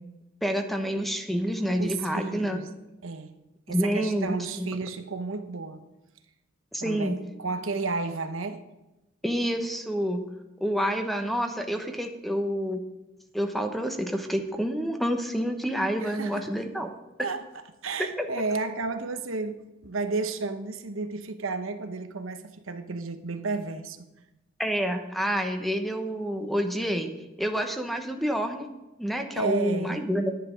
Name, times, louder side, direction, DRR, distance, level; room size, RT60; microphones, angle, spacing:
voice 1, 0.4-2.6 3.7-4.7 6.7-7.2 9.2-10.2 10.6-12.8 13.3-16.9 18.2-18.3 24.6-27.1 27.4-28.7 29.0-30.3, equal, ahead, 1.0 m, -28 dB
voice 2, 1.8-2.7 3.0-3.3 3.7-5.8 6.8-8.6 16.0-16.5 17.2-17.4 17.8-24.1 29.3-30.0, right 3 dB, 80° right, 1.0 m, -32 dB
10.5 x 10.0 x 5.2 m
head